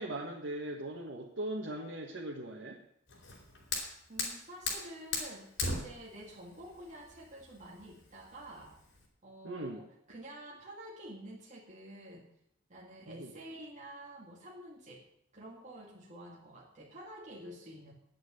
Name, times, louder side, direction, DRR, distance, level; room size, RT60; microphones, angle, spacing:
voice 1, 0.0-2.8 9.4-9.8 13.1-13.3, right 1 dB, 75° right, -2 dB, 1.5 m, -39 dB
Fire, 3.1-9.0, left 3 dB, 80° left, 4.2 m, -39 dB
voice 2, 4.1-8.7 9.2-12.3 12.7-15.0 15.3-17.9, right 1 dB, 40° right, -3 dB, 2.0 m, -49 dB
9.3 x 8.5 x 9.7 m, 0.75 s
head